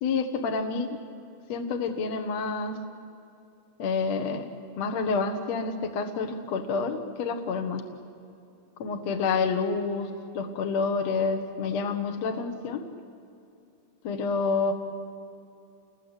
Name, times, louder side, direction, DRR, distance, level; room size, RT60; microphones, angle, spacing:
voice 1, 0.0-1.0 1.5-2.8 3.8-4.5 4.8-7.8 8.8-12.8 14.0-14.7, left 4 dB, 55° left, 6 dB, 2.2 m, -28 dB
29.5 x 21.0 x 8.2 m, 2.7 s
omnidirectional pair, 4.2 m